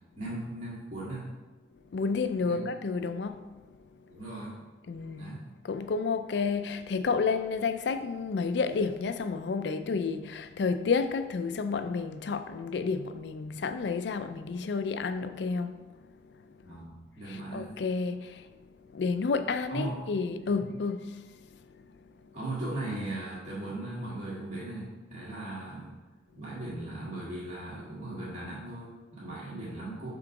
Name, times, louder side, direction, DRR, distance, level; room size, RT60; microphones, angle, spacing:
voice 1, 0.2-1.3 2.4-2.6 4.1-4.6 5.2-5.5 16.6-17.7 19.7-20.0 20.5-20.7 22.3-25.9 26.3-30.1, right 2 dB, 45° right, 1.6 m, -38 dB
voice 2, 1.9-3.5 4.9-5.4 5.6-15.8 17.3-18.5 18.9-21.3, left 4 dB, 70° left, 0.4 m, -30 dB
5.8 x 3.8 x 4.7 m
head